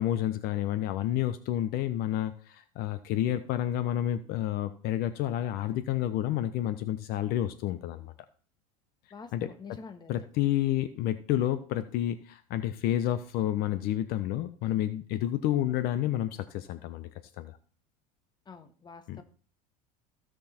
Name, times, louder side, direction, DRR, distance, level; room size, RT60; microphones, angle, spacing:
voice 1, 0.0-8.1 9.3-9.5 10.1-17.1 17.4-17.6 19.1-19.2, left 12 dB, 60° left, 12 dB, 0.9 m, -30 dB
voice 2, 9.1-10.3 18.4-19.2, left 5 dB, 25° left, 9 dB, 1.5 m, -47 dB
15.5 x 6.3 x 4.4 m, 0.41 s
supercardioid pair, 110°, 18 cm